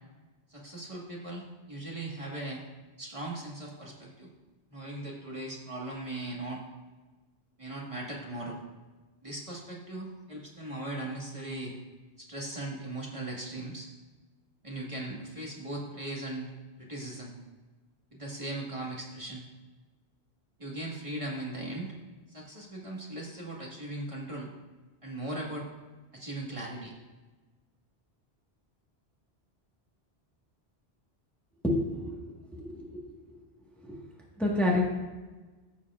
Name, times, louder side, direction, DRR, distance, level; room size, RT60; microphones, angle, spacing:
voice 1, 0.5-2.6 3.0-4.3 4.7-6.6 7.6-8.6 9.2-11.7 12.2-13.9 14.6-16.5 16.8-17.3 18.1-19.4 20.6-21.9 22.3-24.5 25.0-25.7 26.1-26.9, right 1 dB, 30° right, -3 dB, 1.7 m, -38 dB
voice 2, 31.6-32.2 32.5-33.0 33.8-34.0 34.4-34.8, left 1 dB, ahead, -3 dB, 1.4 m, -28 dB
14.5 x 7.1 x 2.4 m, 1.2 s
omnidirectional pair, 1.1 m